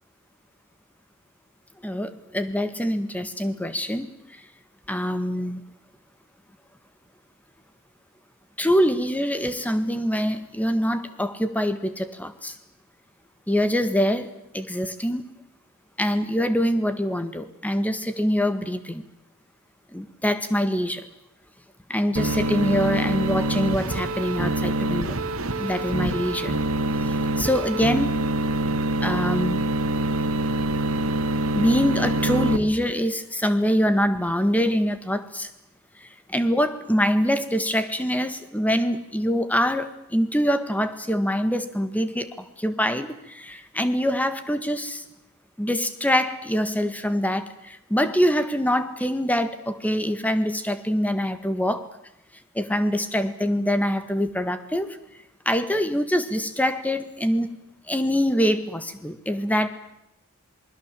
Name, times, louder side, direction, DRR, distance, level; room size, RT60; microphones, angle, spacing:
voice 1, 1.8-4.1 4.9-5.6 8.6-12.6 13.5-14.3 14.5-15.2 16.0-19.0 19.9-21.1 21.9-25.2 25.6-26.5 27.0-28.2 29.0-29.6 31.5-35.5 36.0-45.0 45.6-51.9 52.6-55.0 55.5-57.6 57.9-59.7, equal, 5° left, 10 dB, 1.7 m, -24 dB
sound 1, 22.2-32.6, right 2 dB, 75° right, 2.0 m, -25 dB
27.5 x 21.0 x 7.7 m, 0.84 s
head